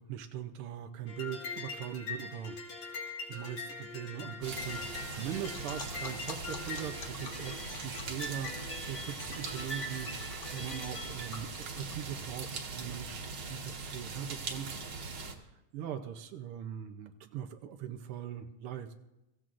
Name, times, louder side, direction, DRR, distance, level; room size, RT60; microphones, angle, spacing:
voice 1, 0.0-18.9, right 10 dB, 75° right, 6 dB, 1.3 m, -41 dB
sound 1, 1.1-11.3, left 3 dB, 90° left, 4.1 m, -42 dB
sound 2, 4.4-15.3, right 4 dB, 50° right, 2.0 m, -41 dB
sound 3, 5.4-12.8, left 6 dB, 60° left, 1.2 m, -49 dB
24.0 x 15.5 x 2.5 m, 0.94 s
omnidirectional pair, 3.3 m